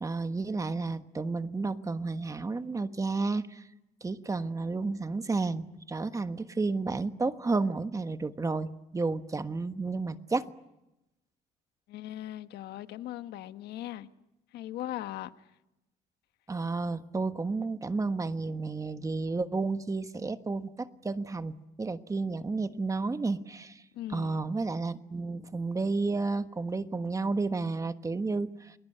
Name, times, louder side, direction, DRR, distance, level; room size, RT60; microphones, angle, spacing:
voice 1, 0.0-3.6 4.0-10.5 16.5-23.8 24.1-28.7, right 3 dB, 20° right, 1.3 m, -31 dB
voice 2, 11.9-14.1 14.5-15.3 23.9-24.4, left 13 dB, 75° left, 1.3 m, -39 dB
29.0 x 21.0 x 9.1 m
cardioid pair, 110°, 17 cm